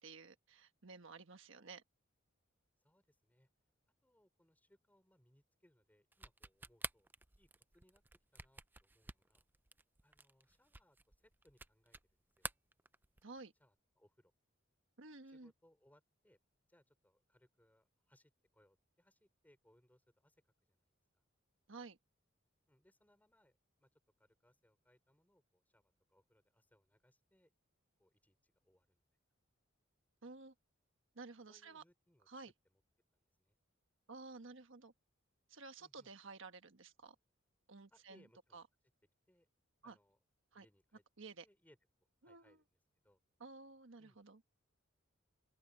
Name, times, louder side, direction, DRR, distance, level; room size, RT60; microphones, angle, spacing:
voice 1, 0.0-1.8 13.2-13.5 15.0-15.5 21.7-22.0 30.2-30.5 31.1-31.8 32.3-32.5 34.1-34.9 35.5-37.1 37.7-38.2 38.5-38.6 39.8-40.0 40.5-40.6 41.2-41.5 42.2-42.6 43.4-44.4, right 3 dB, 65° right, 1.4 m, -53 dB
voice 2, 2.8-3.5 4.0-7.1 7.4-9.5 10.0-12.5 13.6-14.3 15.3-16.4 16.7-20.4 20.7-20.9 22.7-27.5 28.0-29.0 31.5-32.3 32.6-32.8 33.1-33.6 35.8-36.1 37.9-38.6 39.3-39.5 39.8-40.2 40.5-41.0 41.4-41.8 42.2-42.8 43.0-43.2 44.0-44.2, equal, 10° left, 4.2 m, -72 dB
sound 1, 6.1-12.1 12.4-13.4, right 3 dB, 10° right, 0.4 m, -50 dB
head